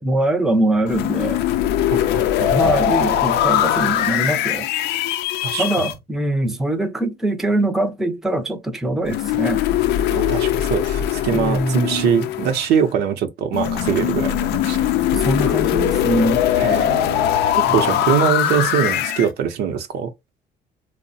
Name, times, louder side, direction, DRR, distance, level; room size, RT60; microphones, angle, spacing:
voice 1, 0.0-1.4 2.5-4.7 5.6-9.6 10.1-10.2 11.3-12.2 15.1-16.4 17.7-18.0, right 1 dB, ahead, 0.5 m, -22 dB
sound 1, 0.9-5.9 9.1-12.8 13.5-19.3, left 11 dB, 80° left, 0.4 m, -21 dB
voice 2, 1.9-2.8 5.4-5.9 10.1-14.9 16.6-20.1, right 8 dB, 80° right, 0.6 m, -23 dB
3.0 x 2.0 x 2.6 m
cardioid pair, 110°, 17 cm